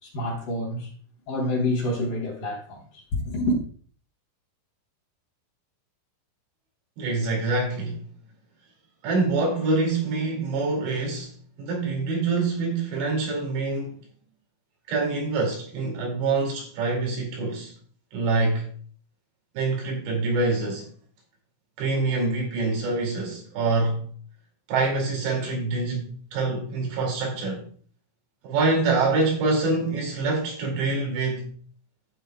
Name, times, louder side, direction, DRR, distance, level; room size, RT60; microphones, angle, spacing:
voice 1, 0.0-0.9 1.3-3.6, left 1 dB, 45° left, 4.8 m, -27 dB
voice 2, 7.0-8.1 9.0-13.9 14.9-17.7 18.1-18.7 19.5-20.9 21.8-24.0 24.7-27.7 28.4-31.5, right 3 dB, 65° right, 4.4 m, -25 dB
16.0 x 6.7 x 2.2 m
omnidirectional pair, 5.7 m